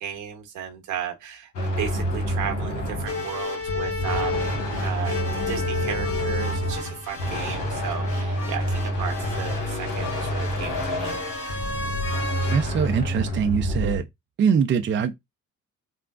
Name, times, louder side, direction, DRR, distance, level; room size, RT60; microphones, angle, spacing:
voice 1, 0.0-11.2, right 9 dB, 90° right, 1.1 m, -35 dB
sound 1, 1.5-14.0, equal, 75° left, 1.3 m, -28 dB
sound 2, 3.0-12.6, left 3 dB, 45° left, 1.5 m, -33 dB
voice 2, 12.5-14.0 14.4-15.1, right 7 dB, 40° right, 0.5 m, -23 dB
3.6 x 2.2 x 2.4 m
cardioid pair, 90°, 30 cm